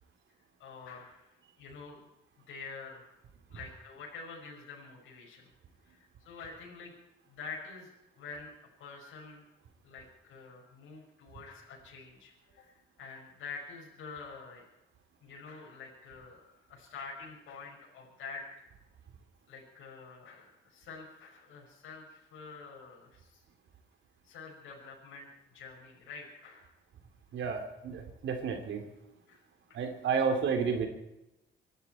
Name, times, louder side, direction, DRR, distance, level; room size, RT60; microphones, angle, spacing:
voice 1, 0.6-1.3 1.6-2.1 2.5-3.1 3.5-5.5 5.8-7.0 7.3-7.9 8.2-8.5 8.8-9.4 9.8-14.7 15.2-18.6 19.5-23.4 24.2-25.3 25.5-26.7 29.3-29.4 29.7-29.8 30.1-30.3, left 4 dB, 80° left, -3 dB, 5.5 m, -47 dB
voice 2, 27.3-28.8 29.7-30.9, right 5 dB, 70° right, 5 dB, 3.3 m, -31 dB
26.0 x 12.5 x 4.5 m, 0.92 s
cardioid pair, 90°, 20 cm